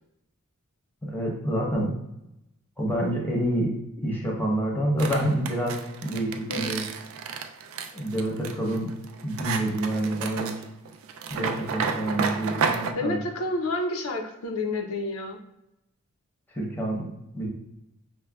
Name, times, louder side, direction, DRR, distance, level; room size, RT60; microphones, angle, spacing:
voice 1, 1.0-1.9 2.8-6.9 7.9-8.9 9.2-10.5 11.3-13.2 16.5-17.1 17.3-17.5, right 1 dB, 10° left, -2 dB, 0.7 m, -28 dB
sound 1, 5.0-12.9, right 5 dB, 65° right, 0.3 m, -31 dB
voice 2, 12.9-15.4, left 2 dB, 65° left, 3 dB, 0.5 m, -29 dB
5.9 x 2.1 x 2.3 m, 0.87 s
head